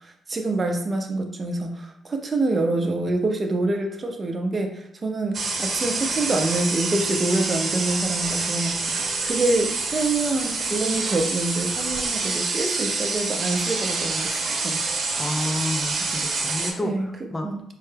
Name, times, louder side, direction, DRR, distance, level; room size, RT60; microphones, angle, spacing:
voice 1, 0.0-14.8 16.8-17.1 17.4-17.6, right 2 dB, 35° right, 3 dB, 0.7 m, -26 dB
sound 1, 5.3-16.7, right 3 dB, 55° right, 0.9 m, -27 dB
voice 2, 15.2-17.5, left 1 dB, 20° left, 4 dB, 0.5 m, -30 dB
4.5 x 2.1 x 3.3 m, 0.72 s
cardioid pair, 90°, 0 cm